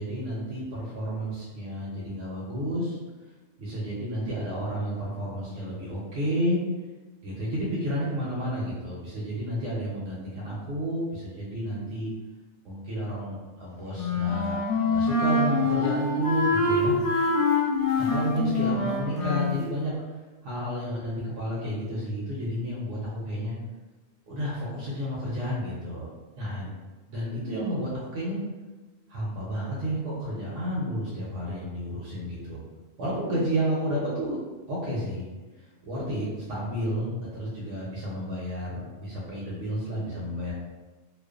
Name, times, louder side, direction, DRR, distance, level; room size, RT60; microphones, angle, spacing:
voice 1, 0.0-3.0 3.6-6.6 7.2-12.1 12.6-14.6 14.8-17.0 18.0-19.9 20.4-23.5 24.3-26.1 26.4-26.7 27.1-28.4 29.1-32.6 33.0-34.4 34.7-35.3 35.8-40.5, equal, 75° right, -6 dB, 0.9 m, -31 dB
Wind instrument woodwind instrument, 13.9-19.6, left 3 dB, 70° left, 0.8 m, -25 dB
2.4 x 2.2 x 2.3 m, 1.2 s
omnidirectional pair, 1.3 m